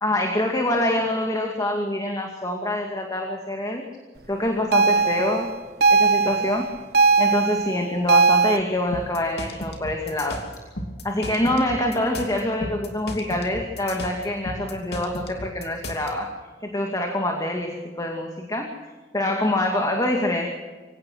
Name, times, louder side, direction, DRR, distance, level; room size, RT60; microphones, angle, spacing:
voice 1, 0.0-3.9 4.3-5.5 5.9-6.7 7.2-10.4 11.0-16.3 16.6-18.7 19.1-20.5, left 1 dB, 20° left, 2 dB, 2.4 m, -25 dB
sound 1, 4.7-8.6, right 4 dB, 65° right, 1.3 m, -19 dB
sound 2, 8.9-16.1, left 1 dB, 65° left, 3.1 m, -34 dB
25.0 x 17.5 x 6.3 m, 1.4 s
head